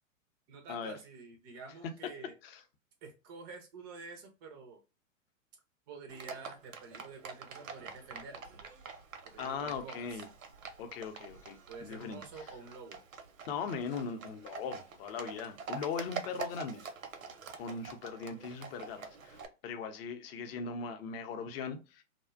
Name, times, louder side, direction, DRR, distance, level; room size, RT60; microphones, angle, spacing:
voice 1, 0.5-2.3 3.0-4.8 5.9-8.6 9.2-10.2 11.7-13.0, right 4 dB, 20° right, 0.3 m, -49 dB
Livestock farm animals working animals, 6.1-19.5, right 5 dB, 85° right, 0.6 m, -46 dB
voice 2, 9.4-10.3 10.8-12.5 13.5-16.8 17.5-22.0, left 5 dB, 50° left, 0.6 m, -39 dB
2.5 x 2.1 x 2.3 m
hypercardioid pair, 120°, 39 cm